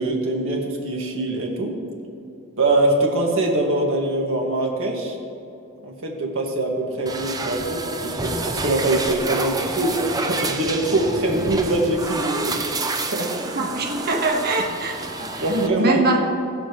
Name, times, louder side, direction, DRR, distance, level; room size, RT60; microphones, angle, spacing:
voice 1, 0.0-1.8 2.6-5.2 5.8-13.7 15.2-16.0, right 2 dB, 60° right, 0 dB, 2.0 m, -23 dB
sound 1, 7.1-15.7, right 2 dB, 15° right, 0.6 m, -28 dB
voice 2, 13.5-15.0 15.3-15.4 15.8-16.3, right 2 dB, 45° right, 2 dB, 1.5 m, -22 dB
20.5 x 7.2 x 3.2 m, 2.8 s
head